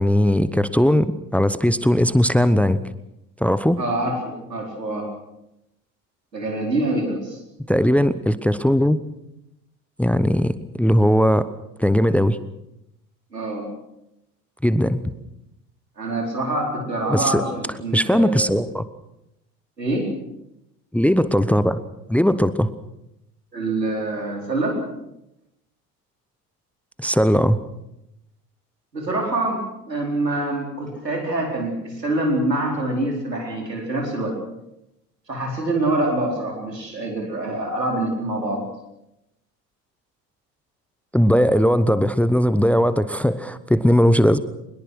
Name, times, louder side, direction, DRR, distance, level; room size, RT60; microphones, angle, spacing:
voice 1, 0.0-2.8 3.4-3.8 7.7-9.0 10.0-11.5 11.8-12.4 14.6-15.1 17.1-17.4 17.9-18.9 20.9-21.8 22.1-22.7 27.0-27.6 41.1-44.4, equal, 5° left, 15 dB, 0.9 m, -18 dB
voice 2, 3.8-5.1 6.3-7.4 13.3-13.7 16.0-18.5 19.8-20.1 23.5-24.8 28.9-34.4 35.3-38.6, right 2 dB, 90° right, 1 dB, 4.5 m, -25 dB
22.5 x 21.5 x 6.3 m, 0.86 s
figure-of-eight pair, 65°, 48 cm